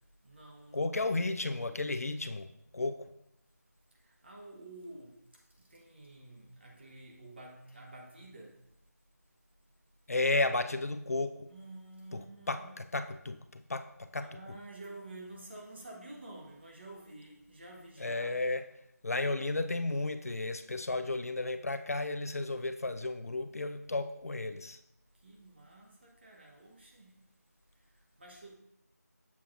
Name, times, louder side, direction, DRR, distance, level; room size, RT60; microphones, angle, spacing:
voice 1, 0.2-1.4 4.0-8.6 11.5-12.9 14.2-18.4 19.3-19.5 25.2-27.2 27.9-28.6, right 2 dB, 40° right, 1.1 m, -50 dB
voice 2, 0.7-2.5 2.7-3.1 10.1-11.5 12.1-12.2 12.5-12.6 12.9-13.8 14.1-14.3 18.0-18.6 19.0-24.8, left 2 dB, 60° left, 0.4 m, -33 dB
7.1 x 5.7 x 2.5 m
figure-of-eight pair, 170°, 9 cm